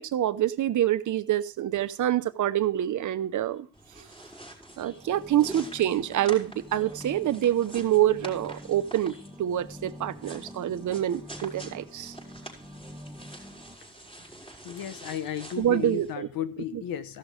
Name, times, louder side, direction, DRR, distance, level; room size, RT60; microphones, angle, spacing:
voice 1, 0.0-3.7 4.8-12.1 15.6-16.3, right 12 dB, 60° right, 0.9 m, -26 dB
sound 1, 3.7-16.1, right 2 dB, 15° left, 4.7 m, -46 dB
sound 2, 4.9-13.8, equal, 5° right, 2.0 m, -46 dB
voice 2, 14.6-17.2, left 10 dB, 80° left, 1.2 m, -34 dB
15.0 x 6.2 x 5.2 m
cardioid pair, 95°, 34 cm